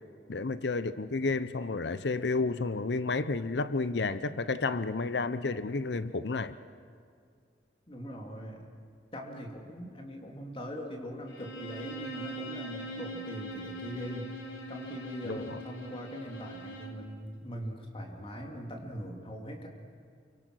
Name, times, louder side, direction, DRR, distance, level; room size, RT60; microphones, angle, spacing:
voice 1, 0.3-6.5 15.2-15.6, left 3 dB, 70° left, 13 dB, 0.7 m, -31 dB
voice 2, 7.9-8.7 9.1-14.3 14.7-19.7, equal, 30° left, 1 dB, 2.8 m, -41 dB
Bowed string instrument, 11.3-17.1, right 1 dB, 90° left, 3.1 m, -42 dB
28.5 x 24.0 x 6.3 m, 2.2 s
head